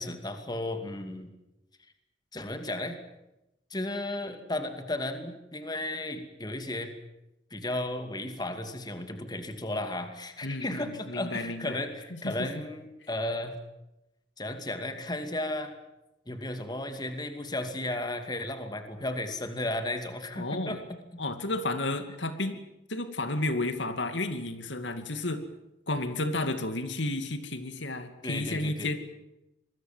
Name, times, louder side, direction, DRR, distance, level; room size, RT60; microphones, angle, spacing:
voice 1, 0.0-1.3 2.3-3.0 3.7-6.9 7.5-13.6 14.4-15.7 16.3-21.0 28.2-28.9, left 1 dB, 25° left, 7 dB, 2.4 m, -34 dB
voice 2, 10.4-11.8 12.1-12.5 20.4-20.8 21.2-22.6 22.9-25.4 25.9-29.0, left 2 dB, 85° left, 9 dB, 2.5 m, -32 dB
26.0 x 21.5 x 7.5 m, 0.92 s
head